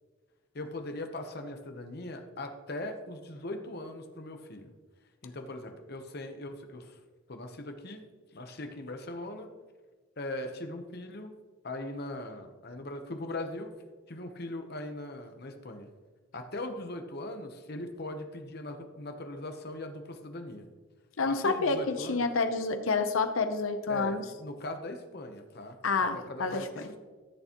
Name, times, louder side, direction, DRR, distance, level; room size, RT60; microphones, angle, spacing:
voice 1, 0.5-4.7 5.2-7.0 7.3-8.0 8.3-9.5 10.2-11.3 11.6-13.7 14.1-15.9 16.3-20.7 21.2-22.3 23.9-27.0, left 1 dB, 50° left, 6 dB, 0.9 m, -40 dB
voice 2, 21.2-24.2 25.8-26.7, left 4 dB, 75° left, 8 dB, 0.7 m, -28 dB
14.5 x 6.7 x 3.0 m, 1.4 s
head